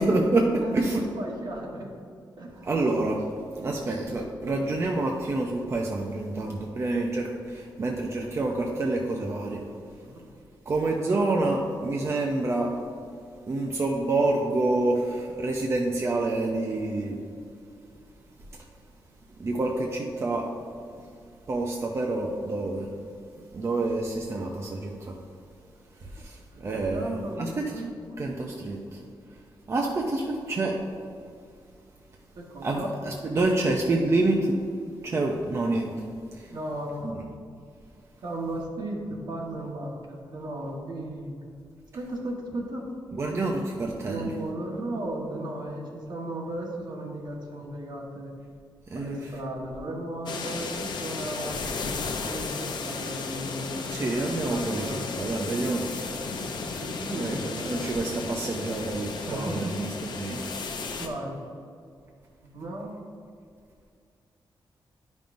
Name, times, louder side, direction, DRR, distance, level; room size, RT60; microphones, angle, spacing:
voice 1, 0.0-0.4 0.7-1.0 2.6-3.2 3.5-9.6 10.7-12.7 13.5-17.2 19.4-20.5 21.5-22.9 23.5-25.1 26.2-27.7 28.2-28.8 29.7-30.7 32.6-34.5 35.0-35.9 37.0-37.1 43.1-44.3 48.9-49.2 53.9-55.8 57.2-57.4 57.6-59.9 60.2-60.4, right 2 dB, 35° right, 0 dB, 0.5 m, -27 dB
voice 2, 0.6-1.9 2.4-2.7 10.0-10.2 26.5-27.9 32.3-32.9 36.5-37.3 38.2-41.4 41.9-42.8 44.1-48.3 48.9-51.6 52.2-55.1 56.8-57.7 59.3-59.9 61.0-61.4 62.4-62.9, right 1 dB, 60° right, 0 dB, 1.2 m, -35 dB
sound 1, 50.3-61.1, left 4 dB, 65° left, 0.6 m, -34 dB
10.5 x 5.3 x 2.5 m, 2.4 s
wide cardioid pair, 160°, 8 cm